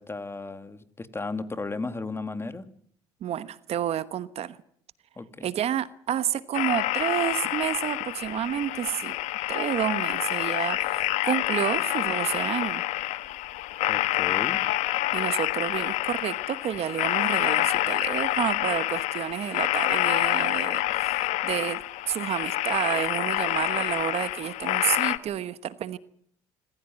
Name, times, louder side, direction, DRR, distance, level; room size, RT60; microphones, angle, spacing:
voice 1, 0.0-2.7 5.2-5.5 13.9-14.6, left 3 dB, 20° left, 2.4 m, -35 dB
voice 2, 3.2-4.6 5.4-9.2 9.5-12.8 15.1-26.0, right 10 dB, 60° right, 1.2 m, -30 dB
sound 1, 6.5-25.2, left 16 dB, 75° left, 1.3 m, -27 dB
25.5 x 15.0 x 9.0 m
supercardioid pair, 75°, 12 cm